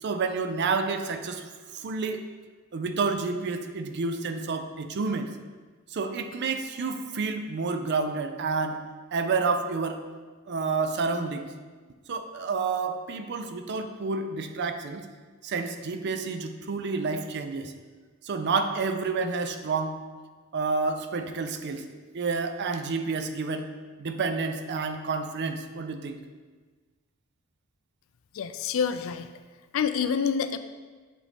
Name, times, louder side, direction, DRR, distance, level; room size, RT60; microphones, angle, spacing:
voice 1, 0.0-1.4 1.7-2.3 2.7-5.3 5.9-8.8 9.1-10.0 10.5-11.5 12.1-15.1 15.4-17.7 18.2-19.9 20.5-21.9 22.1-23.7 24.0-26.2, right 4 dB, 55° right, 7 dB, 0.5 m, -29 dB
voice 2, 28.3-29.3 29.7-30.6, left 6 dB, 70° left, 10 dB, 0.4 m, -27 dB
7.4 x 4.1 x 3.5 m, 1.4 s
head